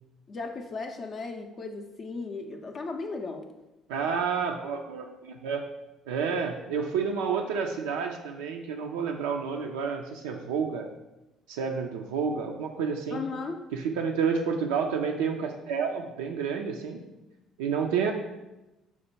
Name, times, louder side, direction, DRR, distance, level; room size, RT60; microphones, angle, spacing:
voice 1, 0.3-3.4 13.1-13.6, left 3 dB, 40° left, 4 dB, 0.4 m, -36 dB
voice 2, 3.9-5.6 6.1-10.9 11.5-13.2 13.7-17.0 17.6-18.1, right 6 dB, 70° right, 2 dB, 0.3 m, -30 dB
5.7 x 2.1 x 4.3 m, 0.99 s
figure-of-eight pair, 50°, 0 cm